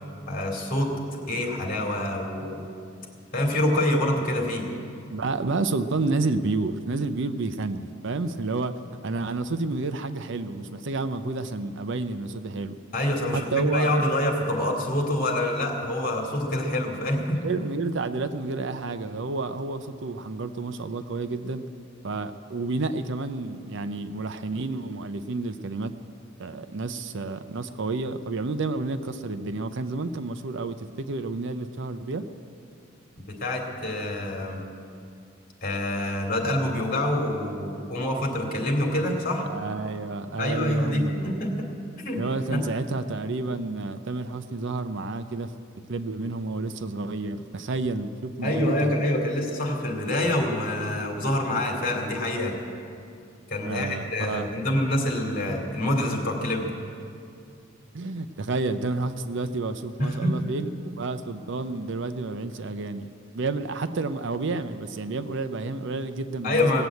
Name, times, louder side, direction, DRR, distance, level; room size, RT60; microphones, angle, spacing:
voice 1, 0.3-2.6 3.3-4.7 12.9-17.4 33.2-34.6 35.6-39.5 40.4-41.7 42.0-42.2 42.5-42.8 48.4-52.6 53.5-56.7 60.0-60.5 66.4-66.9, left 1 dB, 45° left, 1 dB, 2.6 m, -26 dB
voice 2, 5.1-8.7 9.0-12.7 13.3-14.0 17.2-21.6 22.0-25.9 26.4-32.2 39.5-41.4 42.1-45.5 45.9-48.9 53.7-54.5 57.9-63.1 63.3-66.9, right 3 dB, 65° right, 10 dB, 0.6 m, -30 dB
18.0 x 7.8 x 8.3 m, 2.5 s
head